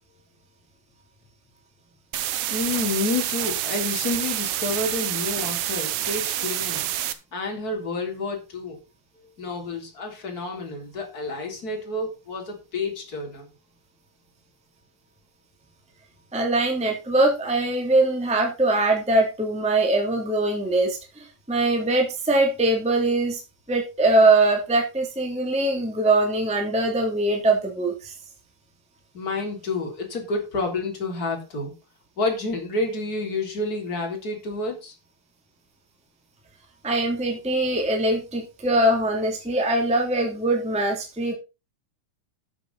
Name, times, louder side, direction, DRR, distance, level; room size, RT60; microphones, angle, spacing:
sound 1, 2.1-7.1, right 12 dB, 75° right, 2.3 m, -28 dB
voice 1, 2.5-6.9 7.3-8.8 9.4-13.5 29.1-31.7 32.2-34.9, left 3 dB, 25° left, 1 dB, 3.8 m, -29 dB
voice 2, 16.3-23.4 23.7-28.1 36.8-41.3, right 2 dB, ahead, 2 dB, 2.4 m, -22 dB
12.5 x 8.0 x 4.1 m, 0.28 s
omnidirectional pair, 3.8 m